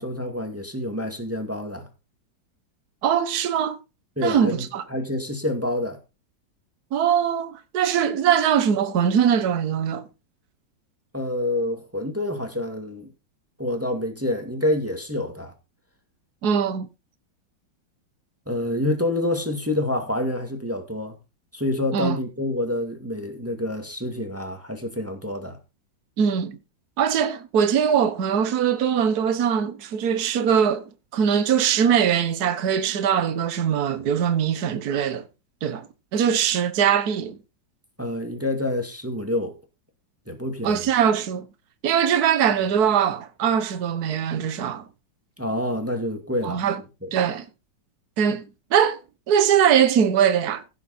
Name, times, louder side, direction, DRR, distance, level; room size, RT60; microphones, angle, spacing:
voice 1, 0.0-1.9 4.2-4.6 4.9-6.0 11.1-13.1 13.6-15.5 18.5-21.1 21.5-25.6 38.0-39.6 40.3-40.9 45.4-46.7 47.0-47.1, left 1 dB, 5° right, 2.0 m, -27 dB
voice 2, 3.0-3.8 4.2-4.8 6.9-10.0 16.4-16.9 21.9-22.2 26.2-26.6 27.0-35.2 35.6-35.8 36.1-37.4 40.6-41.5 41.8-44.8 46.4-46.8 47.1-47.5 48.2-48.4 48.7-49.0 49.3-50.6, right 8 dB, 55° right, 1.6 m, -21 dB
16.5 x 6.8 x 4.2 m
omnidirectional pair, 2.1 m